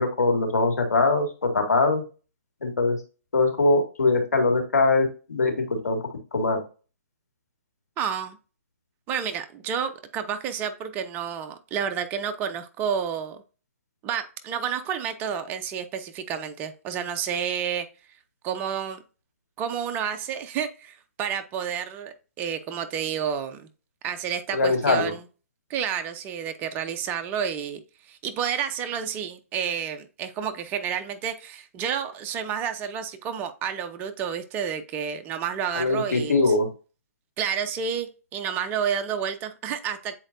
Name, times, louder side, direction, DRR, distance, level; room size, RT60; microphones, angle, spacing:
voice 1, 0.0-2.0 2.6-3.0 3.3-6.0 6.3-6.6 24.5-25.1 35.7-36.7, left 3 dB, 80° left, 3 dB, 2.2 m, -22 dB
voice 2, 8.0-8.4 9.1-13.4 14.0-17.9 18.4-19.0 19.6-23.7 24.0-25.2 25.7-27.8 28.1-36.5 37.4-40.2, right 8 dB, 20° right, 9 dB, 0.6 m, -30 dB
8.7 x 4.4 x 2.6 m, 0.34 s
hypercardioid pair, 140°, 8 cm